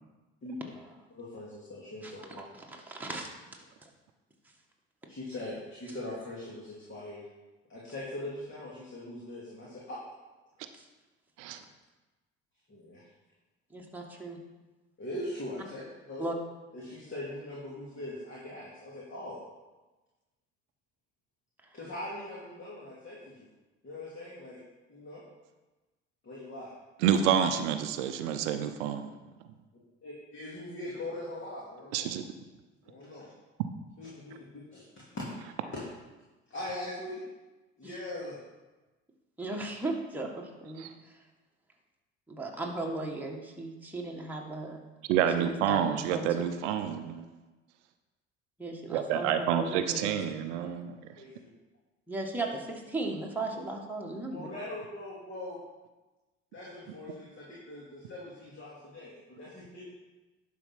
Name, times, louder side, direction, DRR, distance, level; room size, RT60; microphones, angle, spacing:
voice 1, 1.2-2.4 5.1-7.2 7.7-10.0 12.7-13.0 14.0-14.1 15.0-15.8 16.1-16.2 16.7-19.4 21.7-23.5 23.8-24.6 24.9-25.2 26.2-26.7 30.0-32.1 32.8-33.3 34.0-35.8 36.5-37.2 37.8-38.4 51.2-51.5 54.3-55.6 56.5-59.8, left 1 dB, 35° left, -6 dB, 2.7 m, -41 dB
voice 2, 2.0-3.3 3.8-3.9 13.7-14.4 16.2-16.4 37.8-37.9 39.4-40.9 42.3-44.8 45.4-46.4 48.6-50.1 52.1-54.4, right 2 dB, 5° right, -1 dB, 1.8 m, -36 dB
voice 3, 27.0-29.1 31.9-32.2 40.8-40.9 45.1-47.2 48.9-50.9, right 9 dB, 70° right, 8 dB, 0.7 m, -28 dB
11.0 x 4.3 x 5.8 m, 1.2 s
hypercardioid pair, 60°, 36 cm